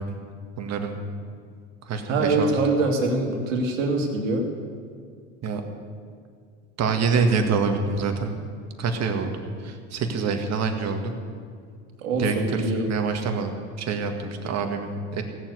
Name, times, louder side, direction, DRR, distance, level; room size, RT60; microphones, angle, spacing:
voice 1, 0.6-1.0 1.8-2.5 5.4-5.6 6.8-8.4 8.8-11.1 12.2-15.2, right 4 dB, 45° right, 5 dB, 2.0 m, -26 dB
voice 2, 2.1-4.5 12.0-12.9, right 3 dB, 80° right, 2 dB, 2.5 m, -24 dB
16.5 x 7.4 x 8.2 m, 2.1 s
hypercardioid pair, 85°, 38 cm